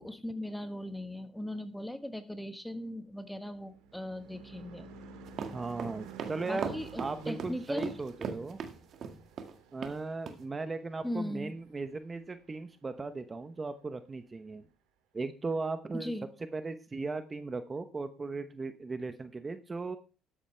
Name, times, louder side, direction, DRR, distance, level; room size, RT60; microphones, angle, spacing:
voice 1, 0.0-4.9 6.4-7.9 11.0-11.5 15.9-16.3, left 1 dB, 5° left, 9 dB, 1.4 m, -38 dB
Car passing by / Truck / Engine, 3.0-11.7, right 5 dB, 85° right, 2.0 m, -51 dB
sound 1, 5.3-9.5 9.8-9.9 10.3-10.4, right 6 dB, 55° right, 1.7 m, -38 dB
voice 2, 5.5-6.7 7.0-8.6 9.7-14.6 15.1-16.1 16.5-20.0, right 3 dB, 25° right, 10 dB, 0.9 m, -37 dB
13.0 x 10.0 x 3.3 m, 0.35 s
supercardioid pair, 75°, 0 cm